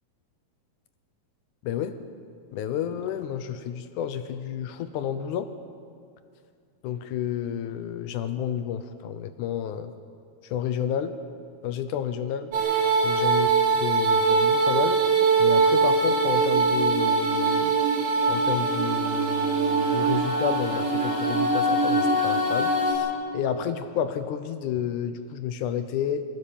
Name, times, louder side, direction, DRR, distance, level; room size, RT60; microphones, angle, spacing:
voice 1, 1.6-2.0 2.5-5.5 6.8-9.9 10.4-11.2 11.6-12.5 13.0-13.5 13.8-15.0 15.4-17.7 18.3-26.3, left 9 dB, 75° left, 10 dB, 2.0 m, -30 dB
sound 1, 12.5-22.9, right 4 dB, 85° right, 4.7 m, -22 dB
24.0 x 16.0 x 7.2 m, 2.3 s
omnidirectional pair, 4.1 m